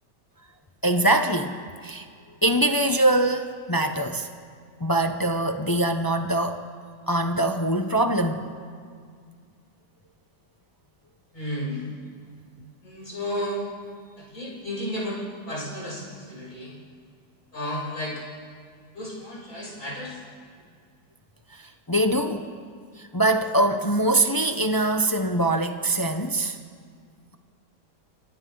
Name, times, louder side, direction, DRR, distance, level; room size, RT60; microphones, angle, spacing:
voice 1, 0.8-1.6 1.8-2.1 2.4-4.3 4.8-6.6 7.1-8.5 21.5-21.6 21.9-22.5 23.0-26.6, right 1 dB, 30° left, 6 dB, 0.4 m, -23 dB
voice 2, 11.3-11.8 12.8-13.6 14.2-15.2 15.5-16.7 17.5-18.1 18.9-20.2, left 1 dB, 50° left, -7 dB, 7.7 m, -32 dB
28.0 x 24.0 x 3.9 m, 2.1 s
omnidirectional pair, 1.8 m